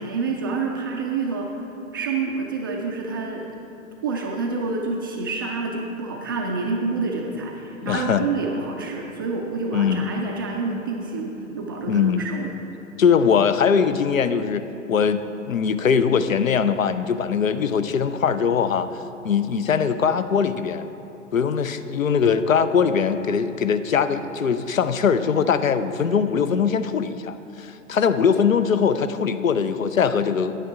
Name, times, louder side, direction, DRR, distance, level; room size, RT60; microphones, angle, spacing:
voice 1, 0.0-1.6 1.9-3.5 4.0-12.5, right 4 dB, 20° right, 1 dB, 0.3 m, -28 dB
voice 2, 7.8-8.3 9.7-10.0 11.9-12.3 13.0-18.9 19.2-20.9 21.3-30.5, left 6 dB, 80° left, 11 dB, 0.6 m, -21 dB
9.4 x 9.1 x 3.7 m, 2.8 s
figure-of-eight pair, 100°, 40 cm